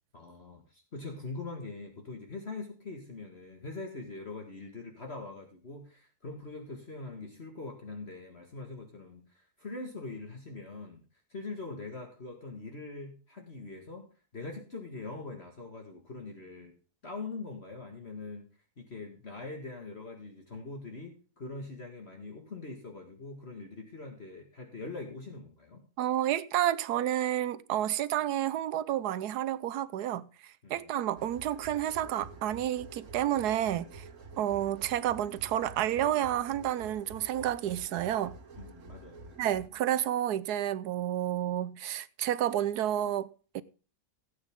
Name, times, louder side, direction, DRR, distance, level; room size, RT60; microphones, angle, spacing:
voice 1, 0.1-11.0 11.3-14.1 14.3-16.7 17.0-18.5 18.8-25.8 30.6-30.9 38.6-39.4, left 3 dB, 40° left, 2.1 m, -43 dB
voice 2, 26.0-34.0 34.4-38.4 39.4-43.3 43.5-43.6, right 11 dB, 80° right, 1.3 m, -30 dB
sound 1, 31.2-39.7, right 3 dB, 55° right, 1.7 m, -49 dB
17.0 x 8.6 x 3.7 m
omnidirectional pair, 1.7 m